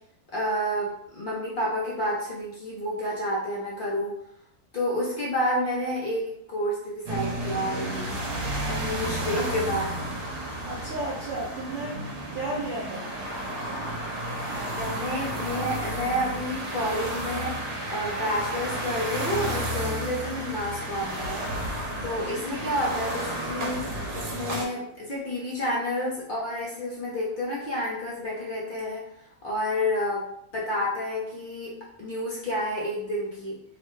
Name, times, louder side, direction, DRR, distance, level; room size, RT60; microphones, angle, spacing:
voice 1, 0.3-4.1 4.7-8.2 8.7-9.9 14.5-21.4 22.0-29.0 29.4-30.2 30.5-31.7 32.0-33.6, left 1 dB, 50° left, -6 dB, 0.7 m, -30 dB
sound 1, 7.1-24.6, right 1 dB, 65° right, 1.0 m, -32 dB
voice 2, 10.6-12.0 12.3-13.1, right 2 dB, 80° right, -4 dB, 0.4 m, -33 dB
2.9 x 2.1 x 3.1 m, 0.73 s
omnidirectional pair, 1.6 m